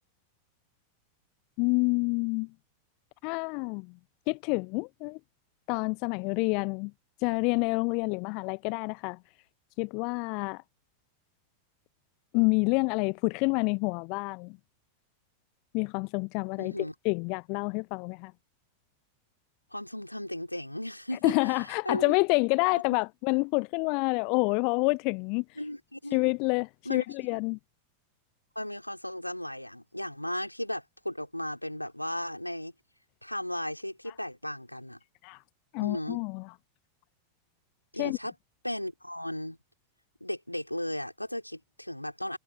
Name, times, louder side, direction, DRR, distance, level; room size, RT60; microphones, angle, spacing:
voice 1, 1.6-2.5 3.2-3.9 4.3-5.2 5.7-6.9 7.2-9.2 9.8-10.6 12.3-14.5 15.7-16.7 17.0-18.3 21.2-25.4 26.1-27.6 35.2-35.4 35.7-36.4 38.0-38.2, left 33 dB, 45° left, 0.6 m, -28 dB
voice 2, 16.6-16.9 19.7-22.0 22.7-22.8 25.6-26.2 26.9-27.0 28.6-32.7 33.2-35.0 35.8-36.2 37.9-38.3 38.6-39.6 40.2-42.4, left 1 dB, 90° left, 4.1 m, -36 dB
figure-of-eight pair, 90°, 0 cm